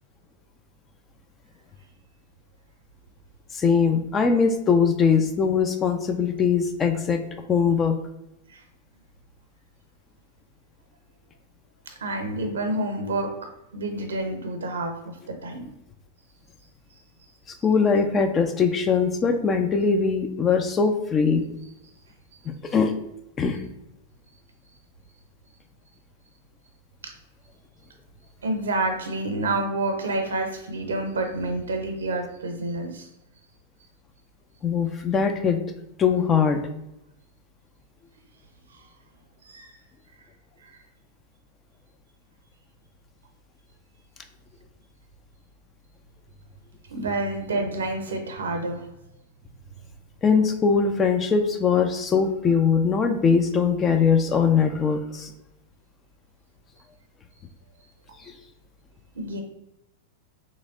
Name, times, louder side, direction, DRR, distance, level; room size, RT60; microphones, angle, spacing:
voice 1, 3.5-7.2 7.5-7.9 17.6-21.4 22.6-22.9 23.4-23.6 34.6-35.6 36.0-36.6 50.2-55.3 58.2-58.3, left 5 dB, 25° left, 6 dB, 0.5 m, -21 dB
voice 2, 12.0-13.3 13.7-15.6 28.4-33.1 39.4-39.7 40.6-40.7 46.9-48.8 59.1-59.4, right 2 dB, 75° right, 5 dB, 0.7 m, -28 dB
3.3 x 3.1 x 3.7 m, 0.86 s
figure-of-eight pair, 95°, 0 cm